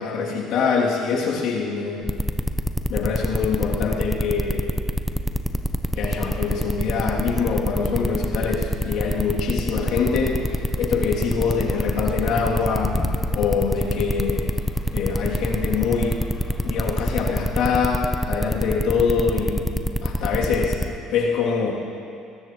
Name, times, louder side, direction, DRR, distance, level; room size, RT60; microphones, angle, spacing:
voice 1, 0.0-2.1 2.9-4.7 6.0-13.0 13.3-14.5 14.9-16.2 16.6-19.7 20.0-21.7, left 5 dB, 65° left, -3 dB, 2.9 m, -24 dB
sound 1, 2.1-20.9, equal, ahead, 0.9 m, -25 dB
sound 2, 5.5-17.5, left 2 dB, 20° left, 2.2 m, -38 dB
21.0 x 17.0 x 3.2 m, 2.4 s
supercardioid pair, 75°, 0 cm